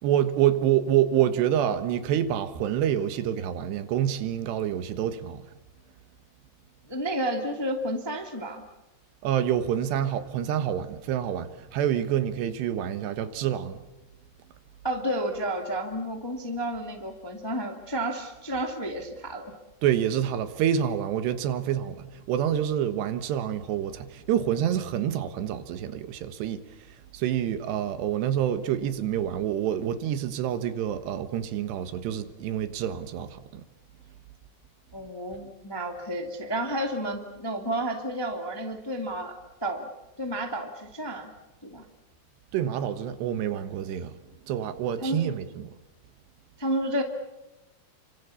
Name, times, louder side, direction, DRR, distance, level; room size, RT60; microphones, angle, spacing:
voice 1, 0.0-5.5 9.2-13.8 19.8-33.6 42.5-44.1 44.4-45.7, right 10 dB, 85° right, 3.5 m, -27 dB
voice 2, 6.9-8.6 14.8-19.5 34.9-39.9 40.2-41.3 41.6-41.8 45.0-45.3 46.6-47.0, right 1 dB, 10° left, 1.0 m, -31 dB
30.0 x 25.0 x 7.1 m
omnidirectional pair, 4.8 m